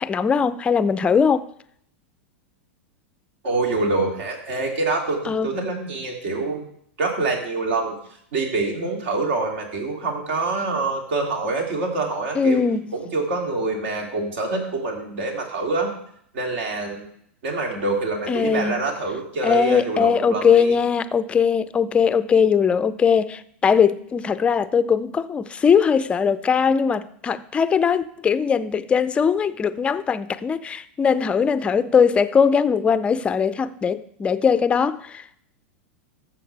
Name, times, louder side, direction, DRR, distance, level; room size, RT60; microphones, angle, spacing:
voice 1, 0.0-1.5 5.3-5.5 12.3-12.9 18.3-18.8 19.4-35.2, left 6 dB, 15° left, 0.4 m, -20 dB
voice 2, 3.4-6.6 7.0-7.9 8.3-12.6 12.9-15.9 16.3-17.0 17.4-20.7, right 3 dB, 65° right, 2.8 m, -25 dB
13.0 x 7.3 x 3.4 m
supercardioid pair, 130°, 7 cm